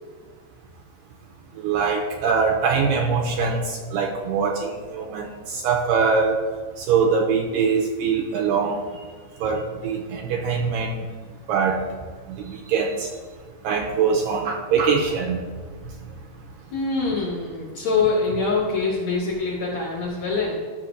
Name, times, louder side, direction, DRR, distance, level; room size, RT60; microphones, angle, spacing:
voice 1, 1.6-6.4 6.8-8.9 9.4-11.0 11.5-11.8 12.3-13.1 13.6-15.5 16.0-16.1, right 5 dB, 80° right, 0 dB, 2.1 m, -23 dB
voice 2, 16.7-20.6, left 4 dB, 65° left, -3 dB, 1.9 m, -24 dB
12.0 x 6.7 x 2.6 m, 1.5 s
omnidirectional pair, 4.4 m